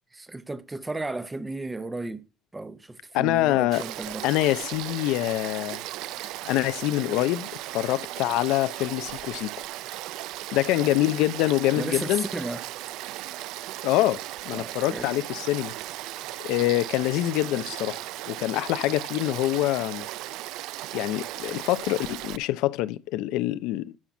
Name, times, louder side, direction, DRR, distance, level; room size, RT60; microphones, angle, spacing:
voice 1, 0.1-2.2 2.5-4.2 11.7-12.6 14.5-15.1, right 2 dB, 10° right, 0.7 m, -34 dB
voice 2, 3.1-3.8 4.2-5.8 6.5-9.5 10.5-12.2 13.8-15.7 16.4-20.1 20.9-23.9, left 16 dB, 85° left, 0.6 m, -25 dB
Frog / Stream, 3.7-22.4, right 16 dB, 75° right, 0.4 m, -36 dB
12.0 x 5.8 x 6.0 m
cardioid pair, 160°, 0 cm